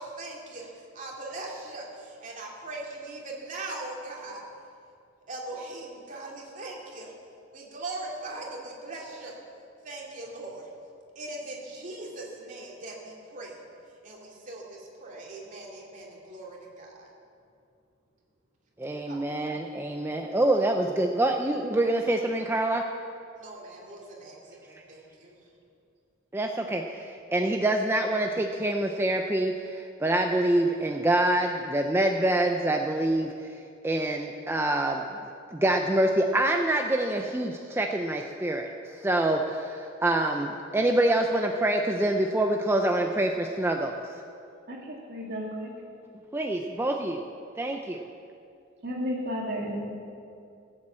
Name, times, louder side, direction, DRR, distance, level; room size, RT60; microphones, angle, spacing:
voice 1, 0.0-4.4 5.3-7.1 7.5-9.4 9.8-10.7 11.2-13.6 14.0-17.1 19.1-19.2 23.4-25.4, right 2 dB, 40° right, -2 dB, 2.6 m, -40 dB
voice 2, 18.8-22.8 26.3-33.3 33.8-35.0 35.5-38.7 39.0-44.0 46.3-47.2 47.6-48.1, right 1 dB, 10° right, 3 dB, 0.5 m, -26 dB
voice 3, 44.7-45.7 48.8-49.8, equal, 60° right, -2 dB, 2.6 m, -33 dB
15.5 x 7.5 x 7.5 m, 2.5 s
head